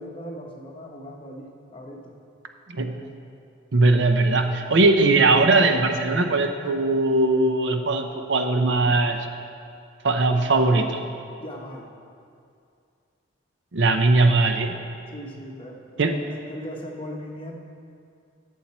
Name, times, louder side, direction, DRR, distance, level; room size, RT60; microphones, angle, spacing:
voice 1, 0.0-2.1 11.4-11.9 15.1-17.6, equal, 30° left, 0 dB, 0.9 m, -39 dB
voice 2, 2.7-3.0 3.7-9.3 10.0-11.0 13.7-14.8 16.0-16.1, right 2 dB, 65° right, 6 dB, 0.6 m, -20 dB
11.5 x 7.2 x 4.2 m, 2.4 s
head